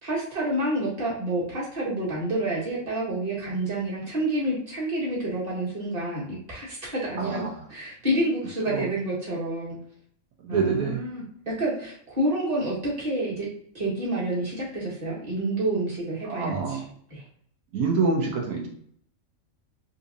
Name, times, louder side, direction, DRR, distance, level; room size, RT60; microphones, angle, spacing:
voice 1, 0.0-7.4 7.7-9.8 10.5-13.5 13.7-16.8 17.1-17.2, right 1 dB, 30° right, -6 dB, 1.5 m, -28 dB
voice 2, 7.2-7.6 8.6-8.8 10.4-11.0 16.2-16.8 17.7-18.7, right 4 dB, 85° right, 0 dB, 1.3 m, -26 dB
4.0 x 2.7 x 2.6 m, 0.62 s
omnidirectional pair, 1.5 m